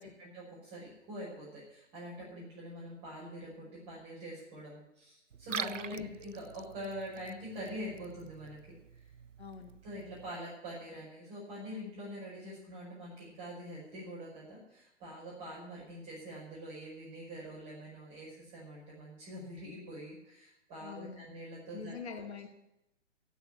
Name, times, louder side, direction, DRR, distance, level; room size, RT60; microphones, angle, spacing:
voice 1, 0.0-9.1 9.8-22.2, equal, 25° right, -7 dB, 5.7 m, -45 dB
Liquid, 5.3-10.3, right 7 dB, 90° right, 0.5 m, -45 dB
voice 2, 9.4-9.8 20.8-21.3 21.7-22.5, left 6 dB, 60° left, 8 dB, 2.1 m, -44 dB
13.0 x 7.2 x 10.0 m, 0.84 s
figure-of-eight pair, 125°, 37 cm